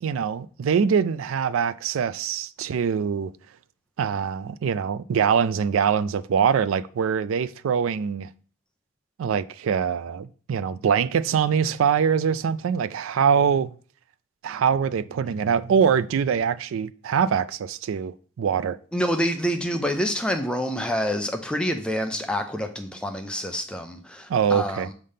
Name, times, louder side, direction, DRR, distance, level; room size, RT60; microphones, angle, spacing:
voice 1, 0.0-3.3 4.0-8.3 9.2-13.7 14.4-18.8 24.3-24.9, right 7 dB, 80° right, 0.3 m, -23 dB
voice 2, 18.9-24.9, equal, 5° left, 0.5 m, -27 dB
6.5 x 3.5 x 5.6 m
head